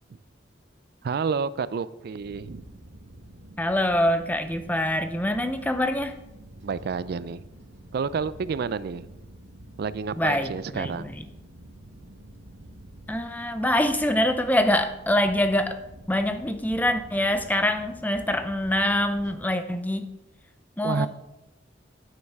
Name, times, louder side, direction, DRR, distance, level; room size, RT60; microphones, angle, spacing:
voice 1, 1.0-2.6 6.6-7.4 7.9-9.1 9.8-11.1 20.8-21.1, right 5 dB, 55° right, 17 dB, 0.4 m, -29 dB
sound 1, 2.2-19.4, right 1 dB, 75° right, 1.1 m, -47 dB
voice 2, 3.6-6.2 10.2-11.2 13.1-15.8 16.1-20.1 20.8-21.1, left 1 dB, 10° left, 9 dB, 0.6 m, -25 dB
9.4 x 8.9 x 3.6 m, 0.92 s
head